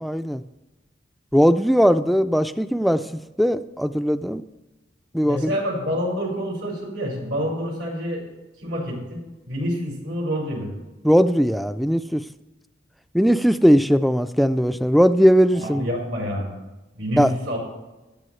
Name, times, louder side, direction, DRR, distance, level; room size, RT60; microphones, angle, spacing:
voice 1, 0.0-0.4 1.3-3.1 3.4-4.4 5.1-5.6 11.0-12.2 13.1-15.9 17.2-17.3, equal, ahead, 12 dB, 0.3 m, -19 dB
voice 2, 5.2-8.2 8.6-10.7 15.5-16.5 16.9-17.6, equal, 85° right, -3 dB, 5.5 m, -27 dB
17.5 x 13.0 x 3.2 m, 1.1 s
head